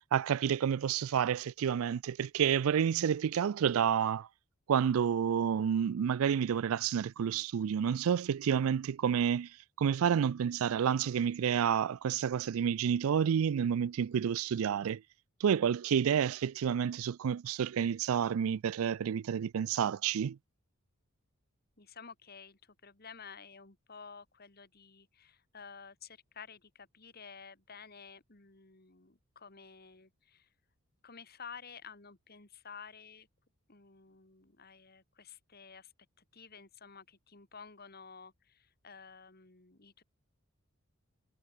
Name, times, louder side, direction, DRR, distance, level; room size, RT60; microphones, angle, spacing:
voice 1, 0.1-4.3 4.7-9.5 9.8-15.0 15.4-20.4, right 8 dB, 75° right, 0.4 m, -29 dB
voice 2, 21.8-30.5 31.0-33.3 33.7-35.9 36.2-40.0, left 6 dB, 45° left, 2.1 m, -52 dB
head